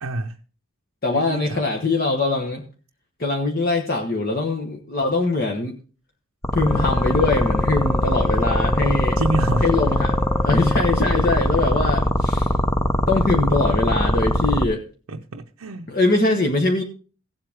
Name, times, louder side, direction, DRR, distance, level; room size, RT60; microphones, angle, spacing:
voice 1, 0.0-0.4 1.1-1.6 9.2-9.7 15.1-15.9, right 2 dB, 80° right, 0.7 m, -27 dB
voice 2, 1.0-2.6 3.2-5.8 6.5-9.2 9.6-12.5 13.1-14.8 15.9-16.8, left 2 dB, 45° left, 1.2 m, -22 dB
sound 1, 6.4-14.6, left 1 dB, 10° left, 0.7 m, -21 dB
Wind instrument woodwind instrument, 6.6-11.4, left 4 dB, 5° right, 1.4 m, -33 dB
16.0 x 7.8 x 3.5 m
head